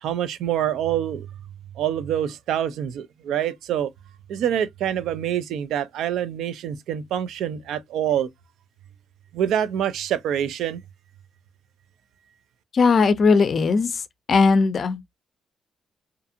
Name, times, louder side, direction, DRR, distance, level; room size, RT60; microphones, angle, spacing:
voice 1, 0.0-1.3 1.8-3.9 4.3-8.3 9.3-10.8, right 10 dB, 90° right, 0.3 m, -26 dB
voice 2, 12.7-14.0 14.3-15.1, left 4 dB, 45° left, 0.4 m, -18 dB
2.5 x 2.4 x 2.6 m
cardioid pair, 110°, 0 cm